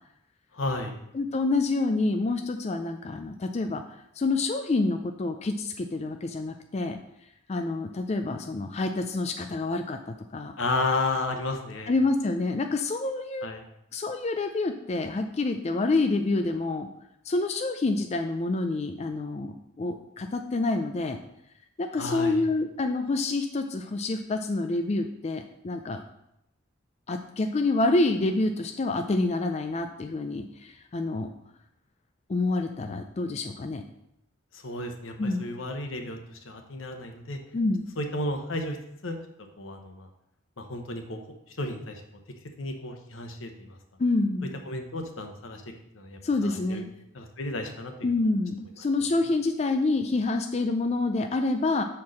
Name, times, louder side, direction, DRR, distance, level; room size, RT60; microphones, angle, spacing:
voice 1, 0.5-1.0 10.6-11.9 13.4-13.6 22.0-22.4 34.5-37.4 38.0-38.8 39.0-39.2 39.6-40.1 40.6-41.2 41.6-42.0 42.6-43.8 44.7-45.6 45.9-46.8 47.1-47.9, left 2 dB, 85° left, 4 dB, 1.0 m, -32 dB
voice 2, 1.1-3.8 4.2-7.0 7.5-10.0 10.3-10.5 11.9-13.5 13.9-16.9 17.2-21.2 21.8-26.0 27.1-31.3 32.3-33.8 35.2-35.4 37.5-37.8 44.0-44.5 46.2-46.8 48.0-51.8, left 2 dB, 35° left, 5 dB, 0.4 m, -27 dB
5.6 x 4.5 x 6.3 m, 0.82 s
head